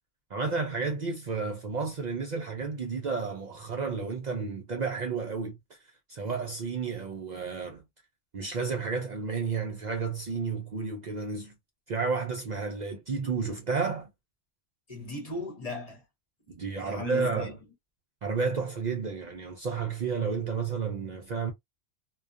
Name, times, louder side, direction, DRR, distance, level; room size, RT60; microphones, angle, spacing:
voice 1, 0.3-5.8 6.1-7.8 8.3-11.5 11.9-14.1 16.5-17.6 18.2-21.5, right 5 dB, 55° right, 0.5 m, -31 dB
voice 2, 14.9-16.0 16.5-17.6, left 2 dB, 40° left, 0.9 m, -38 dB
2.3 x 2.3 x 2.5 m
omnidirectional pair, 1.1 m